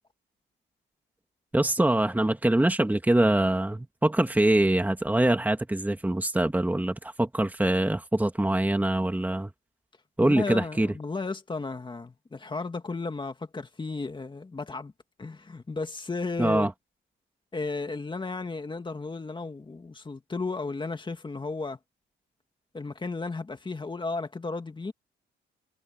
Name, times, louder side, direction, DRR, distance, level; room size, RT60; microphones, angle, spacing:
voice 1, 1.5-9.5 10.2-10.9 16.4-16.7, right 1 dB, 10° right, 2.2 m, -24 dB
voice 2, 10.2-14.9 15.2-16.7 17.5-21.8 22.7-24.9, left 3 dB, 25° left, 2.3 m, -34 dB
cardioid pair, 90°, 20 cm